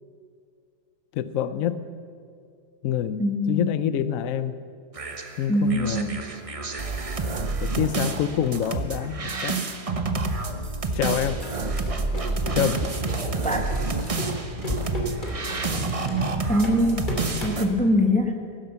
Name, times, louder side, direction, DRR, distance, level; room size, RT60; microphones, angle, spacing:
voice 1, 1.1-1.8 2.8-4.6 5.4-6.2 7.6-9.6 10.9-11.4 12.5-12.9, left 9 dB, 65° left, 14 dB, 0.9 m, -26 dB
voice 2, 3.2-3.7 5.5-6.2 13.4-13.6 16.5-17.1 17.4-18.4, equal, 5° left, 4 dB, 0.9 m, -22 dB
sound 1, 4.9-17.7, right 3 dB, 30° right, 0.8 m, -29 dB
sound 2, 11.2-17.6, right 1 dB, 25° left, 3.0 m, -33 dB
15.5 x 12.0 x 6.9 m, 2.3 s
omnidirectional pair, 1.8 m